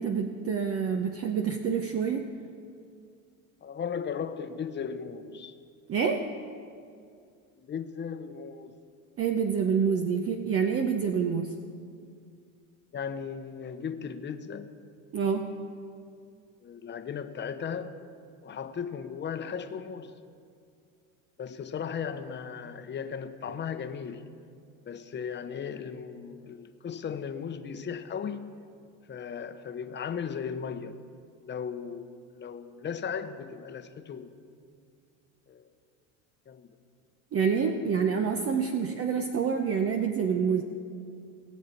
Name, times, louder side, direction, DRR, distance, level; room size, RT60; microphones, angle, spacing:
voice 1, 0.0-2.3 5.9-6.3 9.2-11.6 15.1-15.7 37.3-40.6, right 6 dB, 40° right, 5 dB, 0.9 m, -27 dB
voice 2, 3.6-5.6 7.6-8.8 12.9-14.7 16.6-17.9 18.4-20.1 21.4-24.2 24.8-28.5 29.1-31.0 31.4-34.3 35.5-35.7 36.5-36.7 37.8-38.0, left 7 dB, 30° left, 9 dB, 1.0 m, -36 dB
21.0 x 7.3 x 4.6 m, 2.3 s
supercardioid pair, 95°, 37 cm